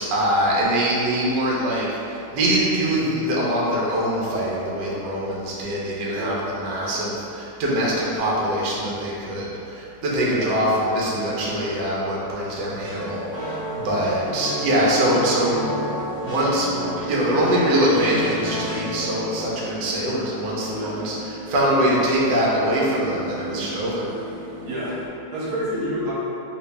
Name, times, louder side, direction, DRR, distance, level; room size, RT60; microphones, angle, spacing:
voice 1, 0.0-15.7 16.2-24.1, right 1 dB, 70° right, -5 dB, 1.1 m, -23 dB
voice 2, 10.2-10.5 20.7-21.0 24.6-25.0 25.3-26.1, equal, 90° right, -7 dB, 1.7 m, -28 dB
sound 1, 12.8-19.1, equal, 35° right, 1.1 m, -31 dB
sound 2, 17.9-25.1, left 1 dB, 75° left, 1.3 m, -37 dB
3.1 x 2.8 x 3.3 m, 2.8 s
omnidirectional pair, 2.2 m